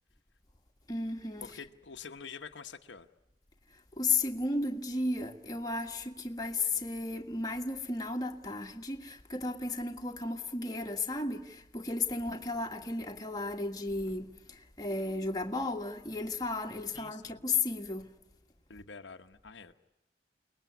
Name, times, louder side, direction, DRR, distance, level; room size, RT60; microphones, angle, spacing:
voice 1, 0.9-1.4 3.7-18.2, left 3 dB, 20° left, 1.6 m, -34 dB
voice 2, 1.4-3.1 12.1-12.2 16.9-17.4 18.7-19.7, left 5 dB, 75° left, 1.2 m, -47 dB
29.0 x 20.0 x 9.5 m
head